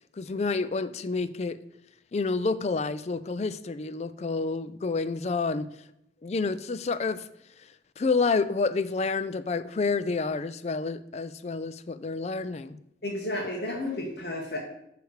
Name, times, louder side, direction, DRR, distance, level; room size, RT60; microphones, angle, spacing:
voice 1, 0.2-1.6 2.1-5.7 6.2-7.3 8.0-12.8, left 4 dB, 35° left, 14 dB, 0.4 m, -29 dB
voice 2, 13.0-14.6, left 1 dB, 60° left, -3 dB, 1.3 m, -32 dB
9.6 x 3.4 x 6.4 m, 0.80 s
head